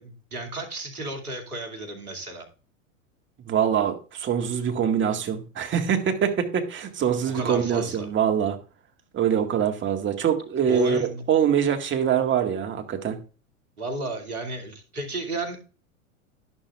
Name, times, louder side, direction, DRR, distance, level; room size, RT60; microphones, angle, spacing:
voice 1, 0.0-2.5 7.3-8.1 10.7-11.2 13.8-15.6, right 2 dB, 90° right, 4 dB, 2.6 m, -33 dB
voice 2, 3.5-8.6 9.1-13.2, right 8 dB, 25° right, 5 dB, 1.8 m, -24 dB
11.5 x 11.0 x 2.4 m, 0.36 s
hypercardioid pair, 100°, 43 cm